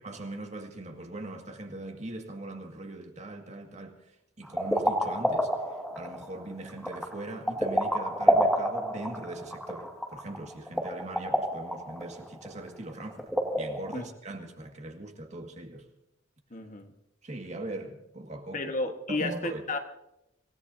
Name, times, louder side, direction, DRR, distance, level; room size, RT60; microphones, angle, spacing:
voice 1, 0.0-4.0 4.4-13.3 13.6-15.9 17.2-18.7 19.1-19.6, right 2 dB, 40° right, 2.0 m, -40 dB
sound 1, 4.4-14.0, equal, ahead, 1.9 m, -29 dB
voice 2, 16.5-16.9 18.5-19.8, left 2 dB, 40° left, 1.4 m, -32 dB
26.5 x 17.0 x 2.8 m
head